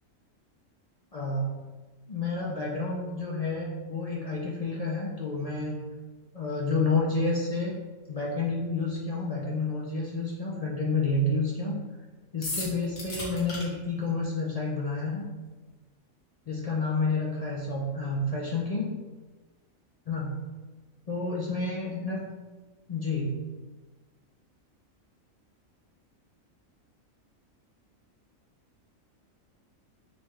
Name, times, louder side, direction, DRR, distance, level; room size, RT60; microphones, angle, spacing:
voice 1, 1.1-1.5 2.1-5.8 6.3-7.7 8.1-11.8 12.3-15.2 16.5-18.9 20.1-20.4 21.1-22.2 22.9-23.4, left 3 dB, 70° left, -4 dB, 0.3 m, -29 dB
sound 1, 12.4-13.6, left 2 dB, 90° left, 1.7 m, -34 dB
3.9 x 3.1 x 3.3 m, 1.3 s
omnidirectional pair, 1.4 m